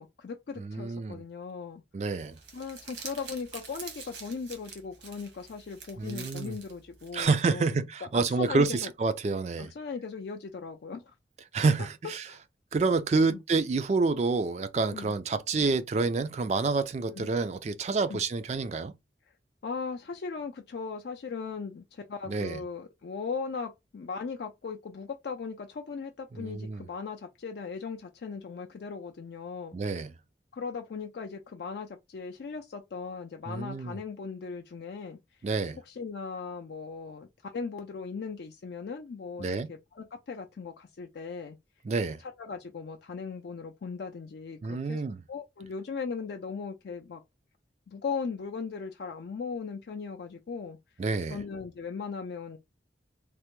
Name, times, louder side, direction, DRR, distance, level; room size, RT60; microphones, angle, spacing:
voice 1, 0.0-1.8 2.5-7.9 8.1-8.9 9.6-11.1 12.3-12.4 13.3-13.4 14.9-15.1 17.1-17.3 18.1-18.2 19.6-29.8 30.5-35.2 35.9-41.6 42.2-45.0 45.3-47.2 47.9-50.8 51.3-52.6, left 5 dB, 60° left, 0.4 m, -38 dB
voice 2, 0.6-1.2 1.9-2.3 6.0-6.6 7.1-9.7 11.5-12.3 12.7-18.9 22.3-22.6 26.3-26.8 29.7-30.1 33.5-34.0 35.4-35.8 39.4-39.7 41.8-42.2 44.6-45.2 51.0-51.4, right 4 dB, 35° right, 0.3 m, -28 dB
Crumpling crinkling, 2.2-7.2, right 5 dB, 75° right, 1.0 m, -46 dB
3.3 x 2.1 x 3.0 m
head